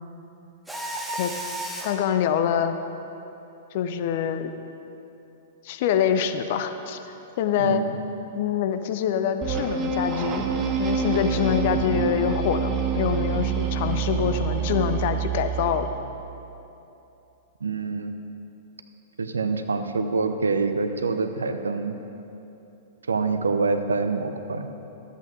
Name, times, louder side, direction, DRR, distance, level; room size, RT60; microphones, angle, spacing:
Mechanisms, 0.7-2.1, right 1 dB, 5° right, 0.9 m, -32 dB
voice 1, 1.8-2.8 3.7-4.5 5.6-7.8 8.3-10.4 10.8-15.9, left 8 dB, 50° left, 8 dB, 0.6 m, -25 dB
voice 2, 7.6-8.0 11.3-11.6 17.6-18.1 19.2-22.0 23.1-24.7, right 4 dB, 75° right, 8 dB, 0.7 m, -26 dB
sound 1, 9.4-15.9, right 6 dB, 25° right, 1.1 m, -26 dB
13.0 x 8.2 x 3.8 m, 2.9 s
figure-of-eight pair, 105°, 0 cm